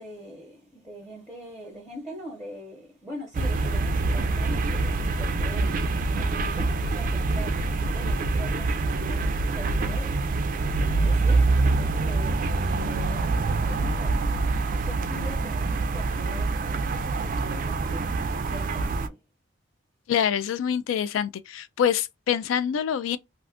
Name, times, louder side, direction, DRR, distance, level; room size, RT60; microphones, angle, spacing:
voice 1, 0.0-14.3 14.7-16.6 16.9-19.2, equal, ahead, 0.7 m, -43 dB
sound 1, 3.3-19.1, right 3 dB, 45° right, 0.3 m, -25 dB
voice 2, 20.1-23.2, left 8 dB, 80° left, 0.3 m, -25 dB
2.5 x 2.4 x 3.5 m
head